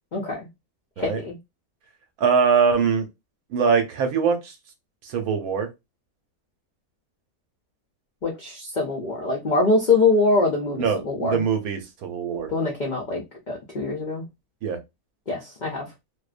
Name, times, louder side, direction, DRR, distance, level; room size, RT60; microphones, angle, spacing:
voice 1, 0.1-0.5 1.0-1.4 8.2-11.4 12.5-14.2 15.3-15.9, left 3 dB, 70° left, 0.4 m, -24 dB
voice 2, 2.2-3.1 3.5-4.5 5.0-5.7 10.8-12.5 14.6-14.8, right 6 dB, 85° right, 1.1 m, -22 dB
2.6 x 2.1 x 2.4 m
omnidirectional pair, 1.5 m